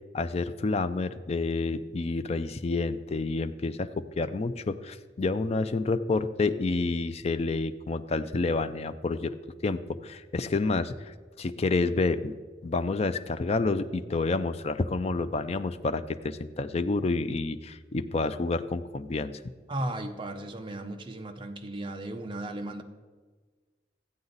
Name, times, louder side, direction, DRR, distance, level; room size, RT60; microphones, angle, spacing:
voice 1, 0.1-9.4 9.6-12.3 12.6-19.4, left 3 dB, 35° left, 10 dB, 0.4 m, -29 dB
voice 2, 19.7-22.8, right 1 dB, 30° right, 5 dB, 0.7 m, -35 dB
14.0 x 8.6 x 4.0 m, 1.4 s
head